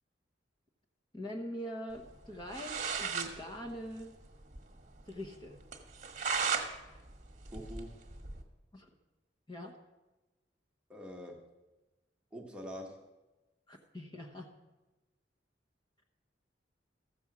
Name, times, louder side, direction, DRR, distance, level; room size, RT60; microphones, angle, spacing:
voice 1, 1.1-4.1 5.1-5.6 8.7-8.9 9.5-9.7 13.7-14.5, equal, 25° left, 2 dB, 1.1 m, -43 dB
sound 1, 2.2-2.3 2.5-3.3 3.7-3.8 4.0-4.1 4.5-4.6 5.0-5.1 5.7-6.7 7.0-8.4, right 5 dB, 45° right, 1.3 m, -35 dB
voice 2, 7.5-8.0 10.9-11.4 12.3-13.1, equal, 5° right, 0 dB, 1.3 m, -45 dB
14.0 x 7.1 x 6.0 m, 1.1 s
head